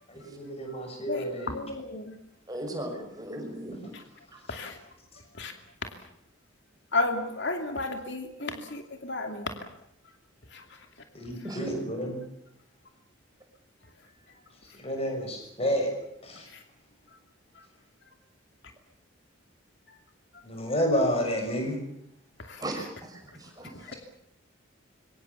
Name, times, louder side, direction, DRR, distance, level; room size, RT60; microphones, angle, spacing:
voice 1, 0.1-1.5 8.4-8.5 11.1-12.2 14.8-15.9 16.2-16.5 20.4-21.8, equal, 30° left, 3 dB, 6.5 m, -30 dB
voice 2, 1.0-2.1 3.9-4.0 4.5-4.8 5.3-5.5 5.8-5.9 6.9-9.7 10.5-10.6 16.5-16.6 22.4-22.6 23.7-23.9, left 2 dB, 60° left, 5 dB, 2.7 m, -33 dB
voice 3, 2.5-3.8 11.4-11.8 22.6-23.7, right 1 dB, 20° right, 2 dB, 6.0 m, -37 dB
26.5 x 24.0 x 7.1 m, 0.74 s
head